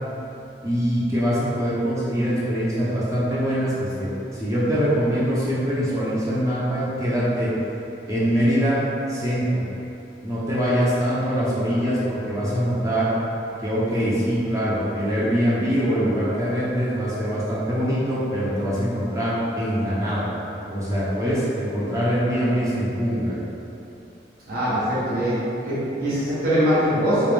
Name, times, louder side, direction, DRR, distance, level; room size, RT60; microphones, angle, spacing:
voice 1, 0.6-7.5 8.1-8.8 9.1-9.6 10.2-13.1 13.6-20.3 20.7-23.4, equal, 20° right, -9 dB, 0.6 m, -23 dB
voice 2, 24.5-25.4 25.6-27.3, equal, 55° right, -12 dB, 1.0 m, -22 dB
3.3 x 3.0 x 3.3 m, 2.9 s
head